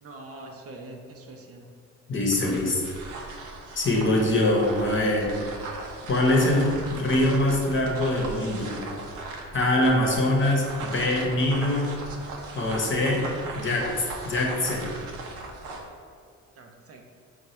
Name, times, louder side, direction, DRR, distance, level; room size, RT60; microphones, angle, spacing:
voice 1, 0.0-1.7 16.6-17.0, right 2 dB, 50° right, 2 dB, 0.6 m, -43 dB
voice 2, 2.1-2.8 3.8-5.3 6.1-8.8 9.5-11.9 12.5-13.3 13.5-13.9 14.2-14.9, left 1 dB, 40° left, -1 dB, 0.9 m, -23 dB
sound 1, 2.2-15.9, right 3 dB, 90° right, 0.6 m, -38 dB
3.8 x 2.4 x 4.3 m, 2.1 s
cardioid pair, 90°, 30 cm